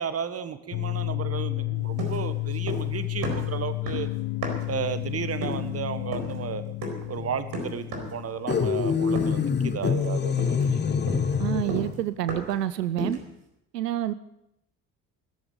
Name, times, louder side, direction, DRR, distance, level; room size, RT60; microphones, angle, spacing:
voice 1, 0.0-4.1 4.7-6.6 7.1-10.7, right 7 dB, 30° right, 12 dB, 1.4 m, -33 dB
sound 1, 0.7-9.5, left 21 dB, 50° left, 0.9 m, -32 dB
sound 2, 2.0-3.0 3.2-4.8 5.4-5.7 6.1-6.4 6.8-7.1 7.5-8.2 8.5-8.8 9.2-9.5 9.8-10.1 10.4-12.6 13.0-13.3, right 1 dB, 50° right, 4.4 m, -34 dB
sound 3, 8.5-12.0, left 6 dB, 20° left, 1.1 m, -25 dB
voice 2, 11.4-13.2 13.7-14.1, right 12 dB, 80° right, 15 dB, 0.6 m, -28 dB
16.0 x 13.5 x 5.4 m, 0.81 s
figure-of-eight pair, 55°, 48 cm